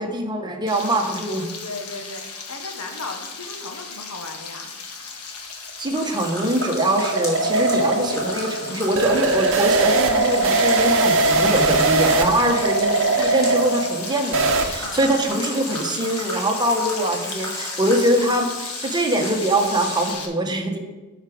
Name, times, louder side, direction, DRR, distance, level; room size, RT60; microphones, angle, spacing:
voice 1, 0.0-1.5 5.8-20.8, right 1 dB, 20° right, 3 dB, 1.1 m, -23 dB
Frying (food), 0.7-20.3, left 5 dB, 85° left, 1.3 m, -36 dB
voice 2, 1.6-4.7 12.2-13.0 14.8-15.1, left 2 dB, 70° left, 4 dB, 1.3 m, -36 dB
sound 1, 5.7-14.7, right 3 dB, 60° right, 0.8 m, -21 dB
sound 2, 5.9-20.1, equal, 15° left, 2.5 m, -35 dB
12.0 x 4.9 x 5.0 m, 1.2 s
head